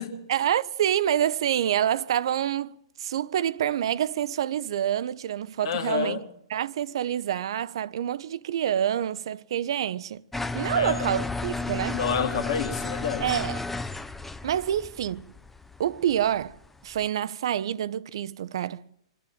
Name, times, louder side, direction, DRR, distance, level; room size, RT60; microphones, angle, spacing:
voice 1, 0.3-6.2 6.5-10.2 10.5-12.0 13.2-13.6 14.4-15.3 15.8-16.6 16.8-18.8, right 10 dB, 65° right, 0.7 m, -27 dB
voice 2, 5.6-6.2 10.7-11.1 11.9-13.2, left 7 dB, 60° left, 2.2 m, -29 dB
sound 1, 10.3-17.0, left 3 dB, 5° left, 0.7 m, -33 dB
26.5 x 11.0 x 9.0 m
hypercardioid pair, 120°, 3 cm